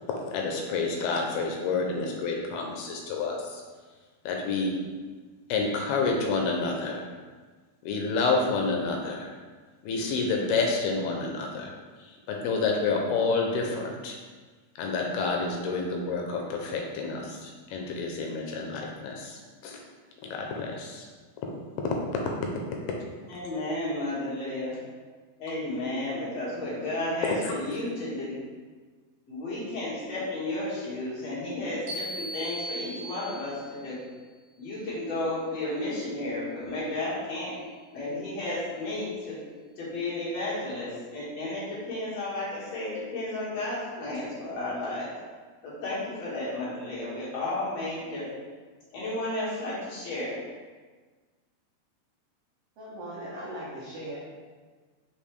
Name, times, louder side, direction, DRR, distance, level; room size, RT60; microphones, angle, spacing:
voice 1, 0.3-3.6 4.3-4.7 5.5-7.0 7.9-9.3 9.8-11.7 12.3-14.2 14.8-19.8 20.3-21.1, left 4 dB, 85° left, 1 dB, 2.6 m, -29 dB
voice 2, 23.3-24.8 25.4-28.4 29.3-34.0 34.6-37.5 37.9-39.4 39.8-45.1 45.6-48.2 48.9-50.3, left 2 dB, 50° left, -8 dB, 2.4 m, -33 dB
sound 1, 31.9-33.8, right 1 dB, 65° right, 2.6 m, -37 dB
voice 3, 52.8-54.2, right 1 dB, 80° right, -8 dB, 1.4 m, -38 dB
5.6 x 5.3 x 3.3 m, 1.4 s
omnidirectional pair, 4.6 m